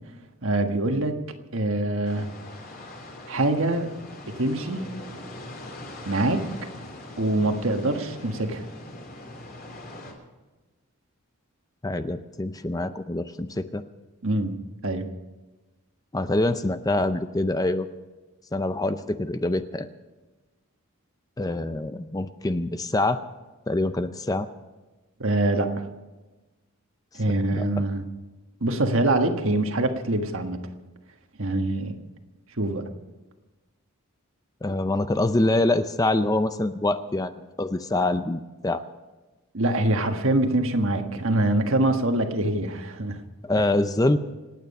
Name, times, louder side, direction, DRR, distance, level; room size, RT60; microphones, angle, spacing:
voice 1, 0.4-1.2 1.5-2.3 3.3-3.9 4.3-4.9 6.1-6.5 7.2-8.6 14.2-14.6 14.8-15.1 25.2-25.8 27.1-28.0 28.6-30.6 31.4-32.0 32.6-32.9 39.5-43.2, right 2 dB, 60° right, 5 dB, 1.5 m, -24 dB
sound 1, 2.0-10.1, left 1 dB, 40° left, 3.3 m, -41 dB
voice 2, 11.8-13.8 16.1-17.9 18.5-19.9 21.4-23.2 23.7-24.5 27.5-27.6 34.6-38.8 43.4-44.2, left 2 dB, 15° left, 11 dB, 0.5 m, -25 dB
27.0 x 9.4 x 5.4 m, 1.2 s
head